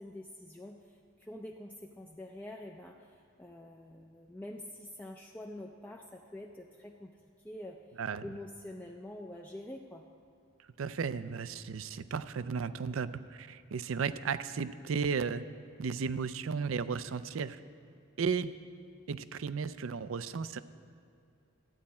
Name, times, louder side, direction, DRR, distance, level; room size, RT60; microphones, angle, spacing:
voice 1, 0.0-7.2 7.4-7.8 8.2-10.0, left 1 dB, 10° left, 0 dB, 0.4 m, -46 dB
voice 2, 10.8-15.4 15.8-17.6 18.2-18.5 19.1-20.6, right 5 dB, 75° right, 13 dB, 0.4 m, -34 dB
13.5 x 9.4 x 4.3 m, 2.4 s
head